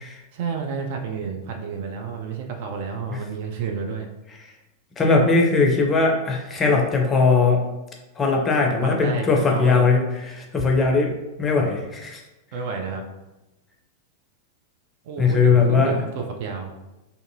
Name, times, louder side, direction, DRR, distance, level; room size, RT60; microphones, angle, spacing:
voice 1, 0.3-4.1 8.8-9.9 12.5-13.1 15.0-16.7, right 5 dB, 50° right, 3 dB, 0.4 m, -30 dB
voice 2, 5.0-7.7 8.2-12.2 15.2-16.0, left 4 dB, 20° left, 1 dB, 0.5 m, -20 dB
2.6 x 2.5 x 2.6 m, 1.0 s
figure-of-eight pair, 90°, 0 cm